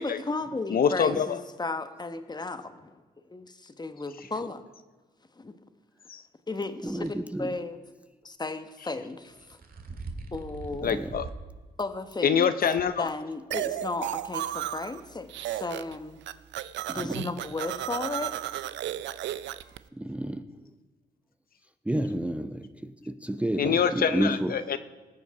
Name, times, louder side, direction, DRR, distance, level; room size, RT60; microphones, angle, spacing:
voice 1, 0.0-2.9 3.3-4.6 5.4-5.5 6.5-7.1 7.4-7.8 8.2-9.3 10.3-10.9 11.8-12.5 13.0-16.2 16.9-18.3, left 3 dB, 25° left, 1.2 m, -34 dB
voice 2, 0.7-1.4 6.1-6.2 10.8-11.3 12.2-13.1 23.6-24.8, left 7 dB, 55° left, 0.6 m, -25 dB
voice 3, 6.8-7.5 10.8-11.1 16.9-17.2 20.0-20.4 21.9-24.5, right 1 dB, 5° right, 0.6 m, -30 dB
sound 1, 6.9-7.1 9.1-11.5 11.9-12.0 12.8-12.9, right 3 dB, 55° right, 1.8 m, -41 dB
sound 2, 13.5-15.0 15.3-16.0 16.2-19.8, right 12 dB, 80° right, 0.5 m, -33 dB
19.5 x 7.0 x 4.9 m
cardioid pair, 70°, 18 cm